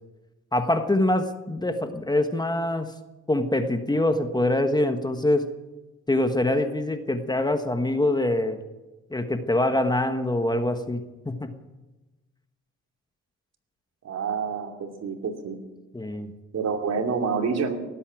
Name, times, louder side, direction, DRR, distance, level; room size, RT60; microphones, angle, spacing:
voice 1, 0.5-3.0 3.3-5.5 6.1-8.6 9.1-11.5 15.9-16.3, left 1 dB, 15° left, 8 dB, 1.4 m, -24 dB
voice 2, 14.0-15.6 16.5-17.8, right 5 dB, 55° right, 4 dB, 2.7 m, -27 dB
18.0 x 8.5 x 9.2 m, 1.1 s
cardioid pair, 90°, 30 cm